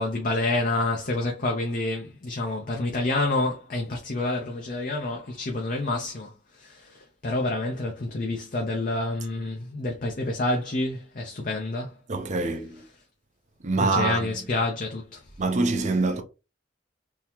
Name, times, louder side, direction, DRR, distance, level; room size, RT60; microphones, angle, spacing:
voice 1, 0.0-6.3 6.6-11.9 13.8-15.2, left 2 dB, 45° left, 0.7 m, -28 dB
voice 2, 12.1-12.8 13.6-14.3 15.4-16.2, right 3 dB, 40° right, 0.6 m, -25 dB
3.8 x 2.8 x 2.9 m
head